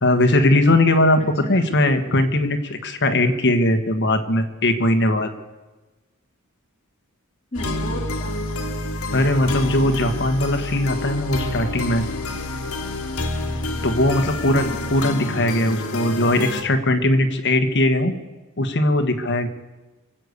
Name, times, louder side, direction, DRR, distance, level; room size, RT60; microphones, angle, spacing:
voice 1, 0.0-5.3 9.1-12.0 13.8-18.1 18.6-19.5, left 1 dB, 55° left, 7 dB, 1.4 m, -19 dB
voice 2, 1.2-1.5 7.5-8.6 14.0-14.5, left 1 dB, 30° left, -2 dB, 3.1 m, -34 dB
sound 1, 7.5-16.6, left 2 dB, 80° left, 1.6 m, -28 dB
23.5 x 8.3 x 6.6 m, 1.2 s
head